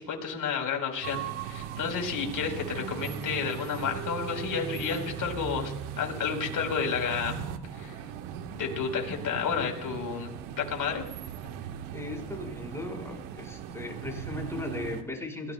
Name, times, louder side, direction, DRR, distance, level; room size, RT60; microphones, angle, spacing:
voice 1, 0.0-7.3 7.7-7.9 8.6-10.3 10.7-11.0, left 6 dB, 40° left, 2 dB, 4.3 m, -31 dB
sound 1, 1.0-15.0, right 8 dB, 75° right, 1.5 m, -38 dB
voice 2, 11.9-15.5, left 2 dB, 5° left, 1 dB, 5.1 m, -37 dB
22.5 x 18.5 x 2.3 m, 0.87 s
supercardioid pair, 95°, 48 cm